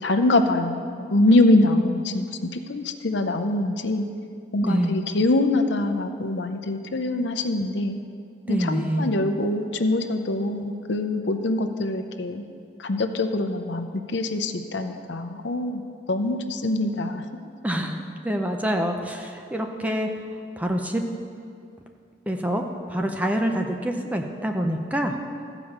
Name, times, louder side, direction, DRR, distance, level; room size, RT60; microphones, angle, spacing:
voice 1, 0.0-4.0 4.5-8.0 8.5-12.4 12.8-15.8 16.1-17.2, left 2 dB, 70° left, 7 dB, 0.7 m, -24 dB
voice 2, 4.6-5.1 8.5-9.1 17.6-20.1 20.6-21.0 22.3-22.6 22.9-25.1, equal, 10° right, 3 dB, 0.6 m, -26 dB
14.0 x 5.0 x 7.2 m, 2.4 s
head